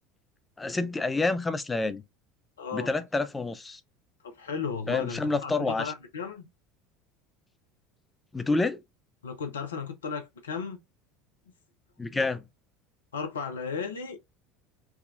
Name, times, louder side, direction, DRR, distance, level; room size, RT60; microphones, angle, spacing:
voice 1, 0.6-2.0 2.7-3.8 4.9-5.9 8.3-8.8 12.0-12.4, left 3 dB, 15° left, 0.5 m, -28 dB
voice 2, 2.6-2.9 4.2-6.5 9.2-10.8 13.1-14.2, left 5 dB, 80° left, 0.5 m, -35 dB
3.5 x 2.2 x 2.4 m
figure-of-eight pair, 70°, 0 cm